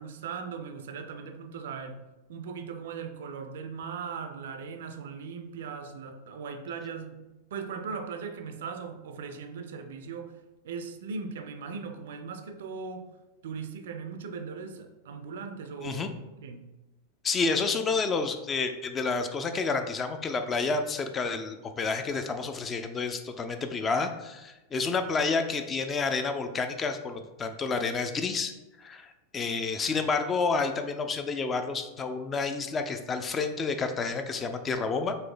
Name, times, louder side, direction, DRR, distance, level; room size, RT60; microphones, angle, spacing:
voice 1, 0.0-2.0 2.3-10.4 10.6-13.1 13.4-16.7, right 5 dB, 60° right, 7 dB, 0.4 m, -39 dB
voice 2, 17.2-28.5 28.8-35.1, left 4 dB, 20° left, 7 dB, 0.3 m, -29 dB
3.9 x 2.6 x 3.6 m, 1.0 s
figure-of-eight pair, 90°, 0 cm